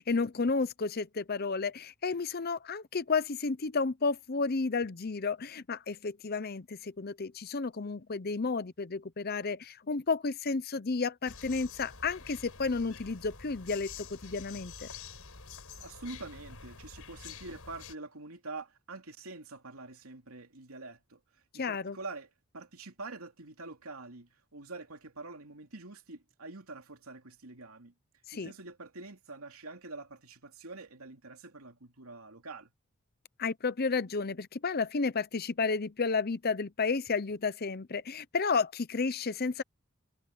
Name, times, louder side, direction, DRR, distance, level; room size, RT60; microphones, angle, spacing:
voice 1, 0.0-14.9 21.5-22.0 28.3-28.5 33.4-39.6, left 4 dB, 45° left, 0.7 m, -32 dB
sound 1, 11.3-18.0, left 5 dB, 90° left, 4.8 m, -48 dB
voice 2, 15.8-21.2 21.5-27.9 28.3-32.7, right 3 dB, 85° right, 2.9 m, -46 dB
head